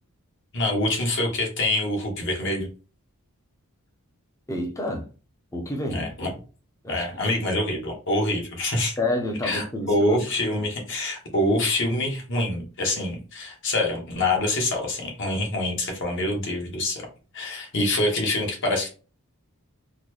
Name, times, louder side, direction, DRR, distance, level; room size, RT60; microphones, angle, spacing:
voice 1, 0.5-2.7 5.9-6.3 6.9-8.9 9.4-17.1 17.3-18.9, left 1 dB, 55° left, 1.1 m, -25 dB
voice 2, 4.5-5.1 5.5-6.3 6.8-7.1 9.0-10.2, left 1 dB, 15° left, 0.6 m, -29 dB
3.9 x 2.1 x 3.0 m
head